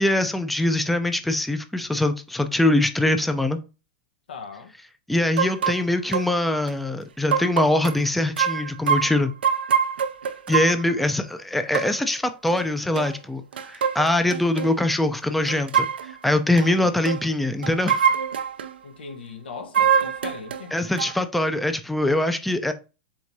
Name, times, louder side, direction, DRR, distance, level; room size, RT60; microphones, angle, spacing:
voice 1, 0.0-3.6 5.1-9.3 10.5-18.1 20.7-22.7, left 1 dB, ahead, 0.4 m, -23 dB
voice 2, 4.3-4.7 16.5-17.0 18.8-20.8, left 5 dB, 90° left, 0.9 m, -39 dB
sound 1, 5.4-5.8 6.1-6.3 6.7-6.8 7.3-8.0 8.4-10.8 11.7-11.9 12.5-12.6 12.9-13.1 13.5-14.7 15.5-16.1 16.6-16.7 17.0-17.2 17.6-18.7 19.7-20.7 21.0-21.1, right 7 dB, 90° right, 0.4 m, -24 dB
4.7 x 3.4 x 2.7 m
hypercardioid pair, 125°, 5 cm